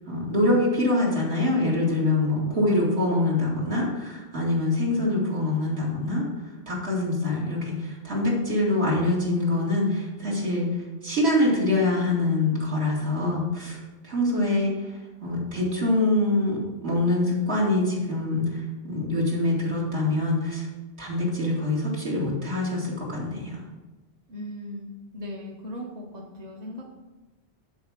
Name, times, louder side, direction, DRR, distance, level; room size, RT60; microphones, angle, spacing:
voice 1, 0.1-6.2 6.7-10.7 11.0-14.9 15.2-20.7 21.0-23.6, left 2 dB, 65° right, -4 dB, 2.8 m, -24 dB
voice 2, 24.3-26.8, left 1 dB, 35° right, -2 dB, 1.2 m, -38 dB
10.5 x 4.8 x 5.8 m, 1.2 s
omnidirectional pair, 1.2 m